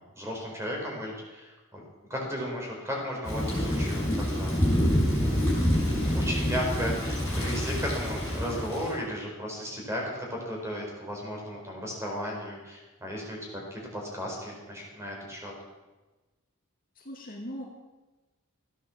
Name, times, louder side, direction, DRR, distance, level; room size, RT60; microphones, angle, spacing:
voice 1, 0.0-1.8 2.1-4.6 5.2-5.5 5.8-15.5, equal, 15° right, -1 dB, 4.4 m, -35 dB
Thunder / Rain, 3.2-9.0, equal, 10° left, 5.9 m, -27 dB
voice 2, 17.0-17.6, equal, 40° left, 0 dB, 2.2 m, -39 dB
14.5 x 10.0 x 7.2 m, 1.1 s
head